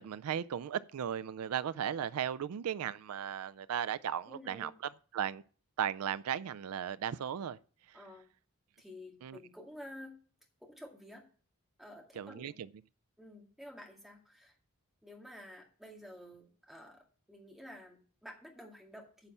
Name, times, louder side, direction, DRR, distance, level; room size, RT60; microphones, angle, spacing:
voice 1, 0.0-4.7 5.1-5.4 5.8-7.6 7.9-8.0 9.2-9.4 12.2-12.7, right 9 dB, 85° right, 0.4 m, -36 dB
voice 2, 4.3-4.7 7.9-8.3 8.8-10.2 10.6-11.2 11.8-12.6 13.2-14.5 15.0-19.3, left 1 dB, ahead, 2.1 m, -51 dB
9.8 x 5.5 x 7.1 m
head